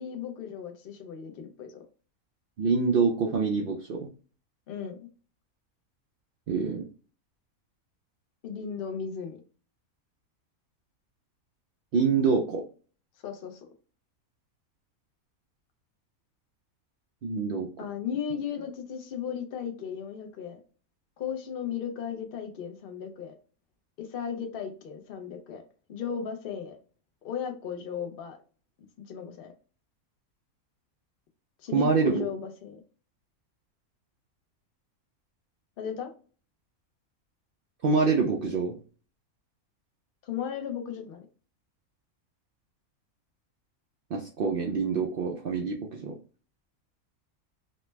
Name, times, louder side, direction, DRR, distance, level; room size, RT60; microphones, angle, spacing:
voice 1, 0.0-1.8 4.7-5.0 8.4-9.4 13.2-13.7 17.8-20.6 21.2-23.3 24.0-25.6 25.9-26.8 27.2-28.4 29.0-29.5 31.6-32.8 35.8-36.1 40.2-41.3, left 7 dB, 55° left, 5 dB, 0.7 m, -36 dB
voice 2, 2.6-4.1 6.5-6.8 11.9-12.6 17.2-17.7 31.7-32.2 37.8-38.7 44.1-46.2, right 5 dB, 80° right, 0 dB, 0.5 m, -26 dB
3.2 x 2.1 x 3.2 m, 0.38 s
omnidirectional pair, 1.5 m